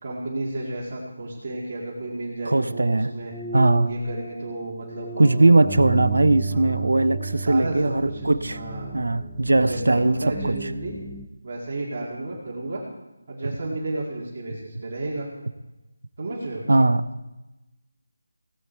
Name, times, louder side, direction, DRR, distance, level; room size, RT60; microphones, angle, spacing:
voice 1, 0.0-3.3 3.8-5.7 6.5-6.8 7.5-8.9 9.7-11.0 11.4-12.8 13.3-15.3 16.2-16.6, right 2 dB, 35° right, -3 dB, 2.1 m, -32 dB
voice 2, 2.4-3.1 3.5-3.9 5.2-8.6 8.9-10.7 13.4-13.6 16.7-17.0, right 2 dB, 90° right, 13 dB, 0.7 m, -20 dB
sound 1, 3.3-11.3, right 4 dB, ahead, 0.5 m, -34 dB
17.0 x 8.7 x 4.5 m, 1.0 s
figure-of-eight pair, 175°, 0 cm